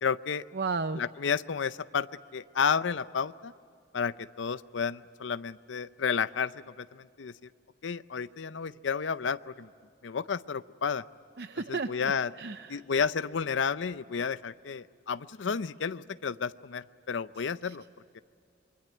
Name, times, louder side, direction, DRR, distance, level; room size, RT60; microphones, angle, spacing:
voice 1, 0.0-0.4 0.9-3.5 3.9-6.5 6.8-7.3 7.8-9.7 10.0-11.0 11.7-12.3 12.7-17.8 18.1-18.2, left 6 dB, 80° left, 14 dB, 0.5 m, -31 dB
voice 2, 0.5-1.0 11.4-12.1 12.4-12.8 17.7-17.8, right 4 dB, 60° right, 11 dB, 0.6 m, -33 dB
25.5 x 22.0 x 9.3 m, 2.3 s
head